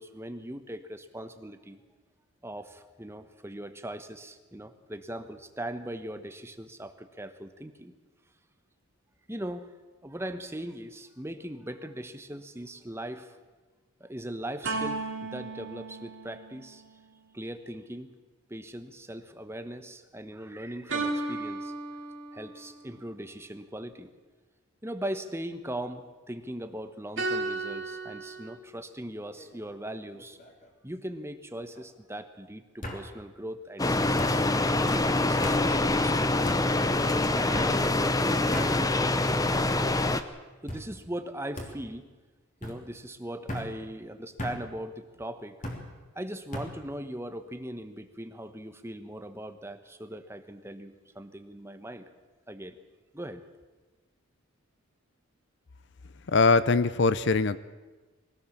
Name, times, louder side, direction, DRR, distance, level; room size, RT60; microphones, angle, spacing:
voice 1, 0.0-1.8 2.4-7.9 9.3-9.7 10.0-13.4 14.0-16.8 17.3-18.1 18.5-21.7 22.3-24.1 24.8-30.4 30.8-34.4 34.9-36.4 36.8-38.9 40.6-42.1 42.6-45.6 46.1-52.1 52.5-52.7 53.1-53.4, right 1 dB, 10° right, 9 dB, 1.1 m, -39 dB
sound 1, 14.6-17.2 20.9-22.7 27.2-28.6, right 3 dB, 60° right, 2.6 m, -34 dB
sound 2, 29.4-29.8 30.1-30.7 31.8-31.9 32.8-33.0 34.2-34.4 35.4-35.6 36.4-36.6 37.5-37.8 38.5-38.7 39.5-39.9 40.7-40.9 41.6-41.7 42.6-42.8 43.5-43.7 44.4-44.6 45.6-45.8 46.5-46.7, left 1 dB, 35° left, 3.1 m, -37 dB
sound 3, 33.8-40.2, left 2 dB, 15° left, 0.8 m, -25 dB
voice 2, 56.3-57.6, left 4 dB, 55° left, 15 dB, 0.6 m, -22 dB
22.5 x 17.0 x 7.3 m, 1.3 s
head